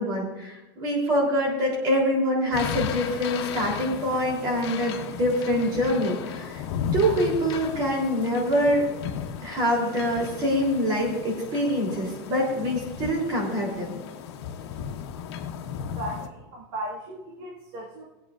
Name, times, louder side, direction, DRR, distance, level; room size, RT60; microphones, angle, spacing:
voice 1, 0.0-6.6 6.9-8.8 9.4-13.9, equal, 30° right, -1 dB, 3.4 m, -25 dB
sound 1, 2.5-16.3, left 8 dB, 85° left, 1.2 m, -35 dB
voice 2, 15.8-18.0, right 1 dB, 65° right, -2 dB, 2.0 m, -36 dB
20.5 x 8.5 x 2.5 m, 1.0 s
supercardioid pair, 170°, 14 cm